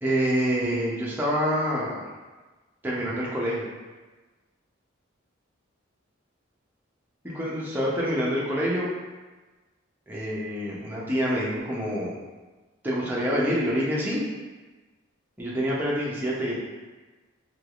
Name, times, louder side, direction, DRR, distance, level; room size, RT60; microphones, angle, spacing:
voice 1, 0.0-1.9 2.8-3.6 7.2-8.9 10.1-12.1 12.8-14.2 15.4-16.6, equal, 10° right, -6 dB, 0.5 m, -26 dB
3.3 x 2.9 x 2.3 m, 1.3 s
head